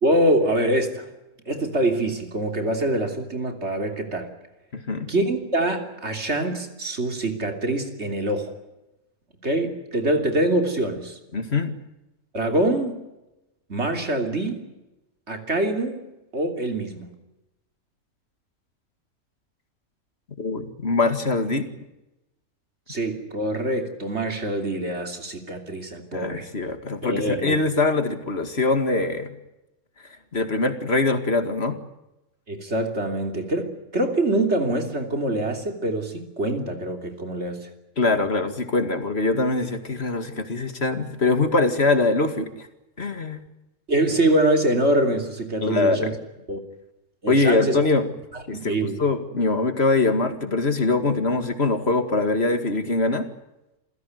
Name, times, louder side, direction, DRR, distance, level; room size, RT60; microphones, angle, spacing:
voice 1, 0.0-1.1 1.5-4.3 5.1-8.5 9.4-11.2 12.3-13.0 13.7-14.7 15.3-17.1 22.9-26.5 27.0-27.6 32.5-37.7 43.9-46.1 46.5-46.6 47.2-47.8 48.3-49.0, right 1 dB, 45° right, 5 dB, 3.4 m, -24 dB
voice 2, 4.7-5.1 11.3-11.7 20.4-21.7 26.1-29.3 30.3-31.8 38.0-42.7 43.0-43.4 45.6-46.1 47.3-48.1 48.5-48.7 49.0-53.3, left 3 dB, 45° left, 9 dB, 2.3 m, -23 dB
27.5 x 16.5 x 9.5 m, 0.98 s
omnidirectional pair, 1.5 m